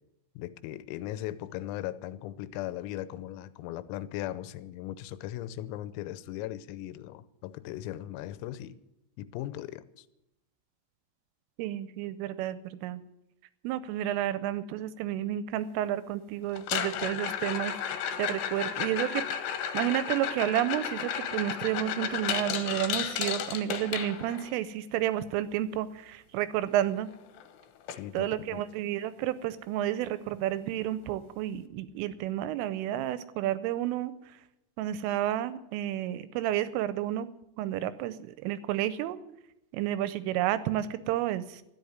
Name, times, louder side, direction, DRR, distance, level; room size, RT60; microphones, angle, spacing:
voice 1, 0.4-8.8 9.2-10.1 27.9-28.7, left 13 dB, 85° left, 3.5 m, -38 dB
voice 2, 11.6-13.0 13.6-19.2 19.7-27.1 28.1-34.1 34.8-37.3 37.6-39.2 39.7-41.6, right 12 dB, 80° right, 3.1 m, -31 dB
sound 1, 16.6-24.5 26.8-26.9 27.1-27.5 27.9-28.0 28.6-28.7 30.5-30.6, left 9 dB, 70° left, 2.9 m, -33 dB
13.0 x 10.5 x 9.5 m
omnidirectional pair, 6.0 m